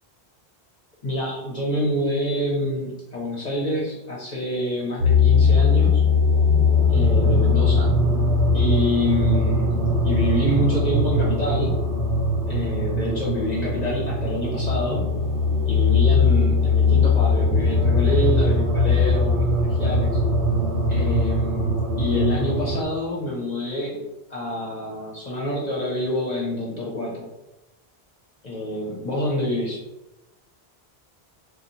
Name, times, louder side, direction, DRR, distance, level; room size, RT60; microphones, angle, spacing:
voice 1, 1.0-6.0 6.9-8.0 8.5-9.8 10.0-11.8 12.5-15.1 15.7-20.2 20.9-24.0 24.3-27.3 28.4-29.8, left 1 dB, 45° left, -3 dB, 0.7 m, -27 dB
sound 1, 5.0-22.8, left 3 dB, 85° right, 0.9 m, -20 dB
2.6 x 2.4 x 4.0 m, 0.94 s
omnidirectional pair, 1.0 m